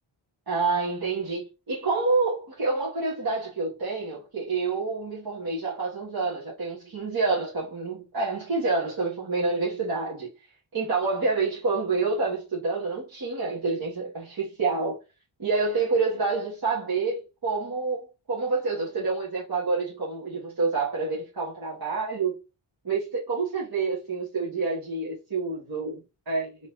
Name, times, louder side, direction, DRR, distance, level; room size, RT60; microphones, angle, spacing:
voice 1, 0.5-1.4 1.7-10.3 10.7-15.0 15.4-22.4 22.8-26.6, right 4 dB, 45° right, 1.5 m, -28 dB
4.0 x 3.2 x 2.7 m
wide cardioid pair, 110°, 50 cm